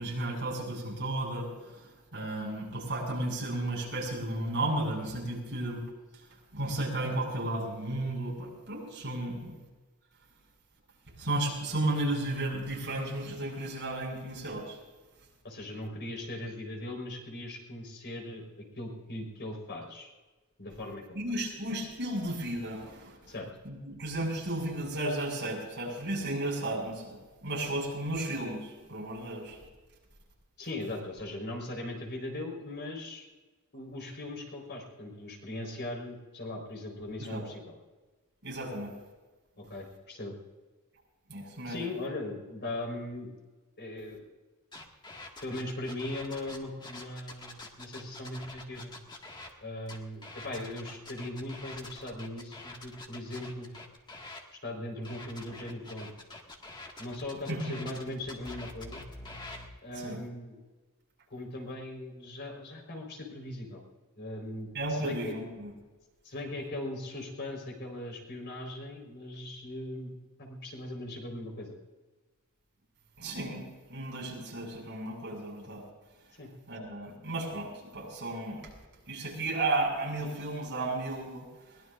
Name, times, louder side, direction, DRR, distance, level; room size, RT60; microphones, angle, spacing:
voice 1, 0.0-5.8 6.5-9.5 11.2-14.8 21.1-23.3 23.6-29.6 37.2-37.4 38.4-39.0 41.3-41.8 57.5-57.8 59.9-60.2 64.7-65.7 73.2-75.8 76.7-78.7 79.1-81.5, right 1 dB, 55° right, -1 dB, 6.0 m, -34 dB
voice 2, 15.4-20.1 20.6-21.2 23.3-23.5 30.6-33.3 33.7-37.8 39.6-40.3 41.7-43.3 43.8-44.2 45.4-48.9 49.6-53.7 54.6-56.1 57.0-59.0 59.8-60.6 61.3-63.8 64.2-65.4 66.2-71.8 76.4-76.5, left 1 dB, 50° left, 1 dB, 4.3 m, -39 dB
sound 1, 44.7-49.5 49.9-54.4 55.0-59.7, left 2 dB, 20° left, 1.8 m, -46 dB
22.5 x 19.5 x 2.5 m, 1.2 s
head